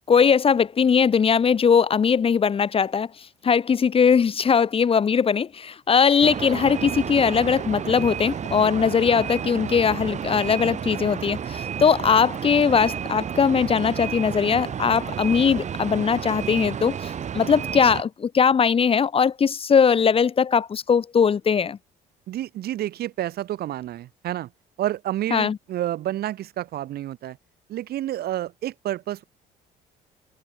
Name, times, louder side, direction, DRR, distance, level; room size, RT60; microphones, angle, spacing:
voice 1, 0.1-3.1 3.4-17.0 17.3-21.8 25.3-25.6, left 6 dB, 35° left, 1.2 m, -20 dB
sound 1, 6.2-18.0, right 8 dB, 45° right, 2.7 m, -31 dB
voice 2, 22.3-24.5 24.8-27.4 27.7-29.2, right 13 dB, 65° right, 4.2 m, -29 dB
cardioid pair, 110°, 17 cm